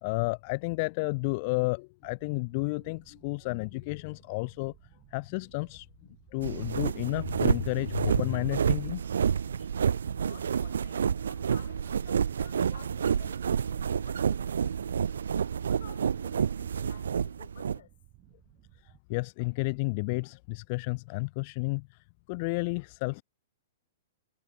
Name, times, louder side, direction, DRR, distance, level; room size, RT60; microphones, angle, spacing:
voice 1, 0.0-4.7 5.1-5.9 6.3-9.1 9.6-9.7 18.8-22.0 22.3-23.2, left 27 dB, 45° left, 0.5 m, -31 dB
sound 1, 2.0-19.0, right 21 dB, 35° right, 4.7 m, -59 dB
sound 2, 6.4-17.8, right 7 dB, 85° right, 0.6 m, -29 dB
voice 2, 10.2-15.2 15.7-17.9, left 10 dB, 70° left, 4.2 m, -54 dB
hypercardioid pair, 140°, 0 cm